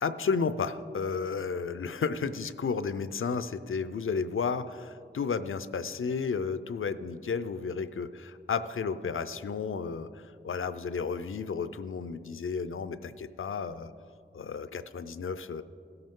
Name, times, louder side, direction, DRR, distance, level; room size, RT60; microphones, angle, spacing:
voice 1, 0.0-13.9 14.3-15.6, left 5 dB, 80° left, 12 dB, 0.5 m, -32 dB
17.5 x 7.9 x 3.7 m, 2.5 s
wide cardioid pair, 60°, 21 cm